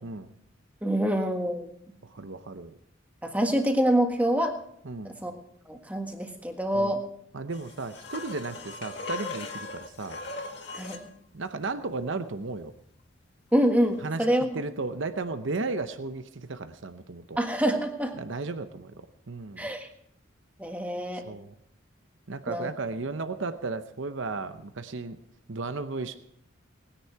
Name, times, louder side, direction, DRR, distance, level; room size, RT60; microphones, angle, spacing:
voice 1, 0.0-0.3 2.0-2.8 4.8-5.2 6.7-6.9 7.3-10.2 11.3-12.7 14.0-14.3 14.5-17.4 18.1-19.7 21.2-21.5 22.3-25.2 25.5-26.2, right 3 dB, 65° right, 9 dB, 0.8 m, -34 dB
voice 2, 0.8-1.7 3.2-4.5 5.0-5.4 5.7-7.0 10.7-11.1 13.5-14.5 17.4-18.1 19.6-19.9 20.6-21.2 22.5-22.7, equal, 5° right, 3 dB, 1.5 m, -26 dB
sound 1, 7.5-11.1 14.0-14.1, left 3 dB, 55° left, 2.1 m, -39 dB
19.5 x 10.0 x 4.7 m, 0.71 s
head